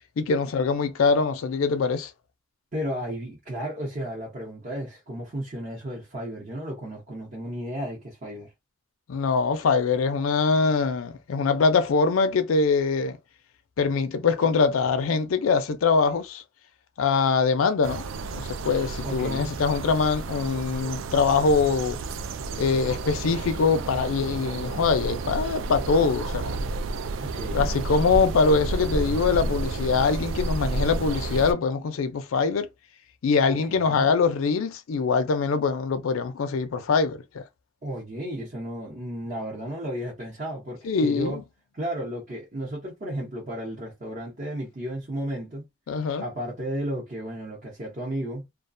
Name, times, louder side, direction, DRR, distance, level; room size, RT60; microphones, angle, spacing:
voice 1, 0.2-2.1 9.1-13.2 13.8-16.4 17.0-22.0 22.6-26.6 27.5-32.7 33.2-37.4 40.8-41.4 45.9-46.2, left 4 dB, 85° left, 0.4 m, -23 dB
voice 2, 2.7-8.5 19.0-19.5 27.2-27.7 33.5-34.1 37.8-41.4 41.7-45.6 46.2-48.4, equal, 40° right, 0.8 m, -33 dB
sound 1, 17.8-31.5, right 3 dB, 70° right, 0.3 m, -31 dB
2.3 x 2.2 x 2.5 m
head